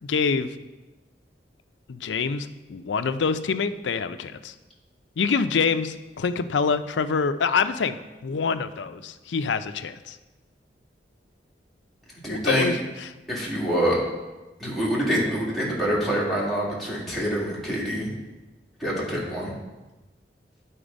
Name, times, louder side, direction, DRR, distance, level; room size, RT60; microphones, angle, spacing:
voice 1, 0.0-0.5 1.9-4.5 5.2-8.0 8.2-10.2 12.3-13.1, left 5 dB, 90° left, 11 dB, 0.4 m, -26 dB
voice 2, 12.2-12.7 13.3-14.0 14.6-18.1 18.8-19.5, equal, ahead, -7 dB, 2.0 m, -25 dB
10.0 x 4.3 x 5.1 m, 1.1 s
head